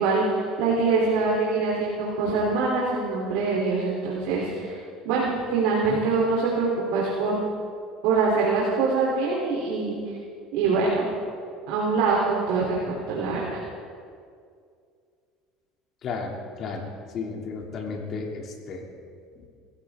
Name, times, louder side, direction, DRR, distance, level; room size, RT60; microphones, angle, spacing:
voice 1, 0.0-4.8 5.0-7.4 8.0-10.0 10.5-11.0 11.7-13.6, right 4 dB, 75° right, -5 dB, 3.4 m, -24 dB
voice 2, 16.0-18.9 19.4-19.5, left 4 dB, 45° left, 1 dB, 2.7 m, -34 dB
22.0 x 15.5 x 3.7 m, 2.3 s
cardioid pair, 135°, 0 cm